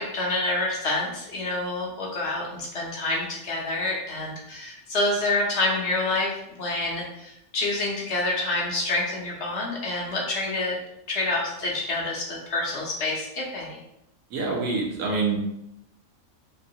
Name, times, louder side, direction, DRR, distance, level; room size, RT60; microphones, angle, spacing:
voice 1, 0.0-10.8 11.1-13.8, left 2 dB, 60° left, -2 dB, 0.8 m, -27 dB
voice 2, 14.3-15.4, right 4 dB, 80° right, 0 dB, 1.2 m, -26 dB
3.0 x 2.8 x 2.7 m, 0.82 s
omnidirectional pair, 1.4 m